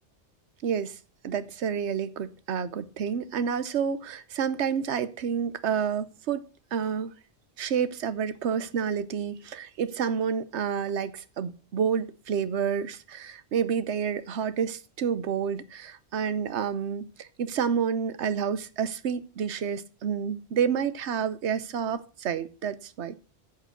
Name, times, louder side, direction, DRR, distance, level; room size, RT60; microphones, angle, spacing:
voice 1, 0.6-1.0 1.2-7.1 7.6-23.2, right 7 dB, 80° right, 1.1 m, -29 dB
9.9 x 6.7 x 6.2 m
omnidirectional pair, 1.1 m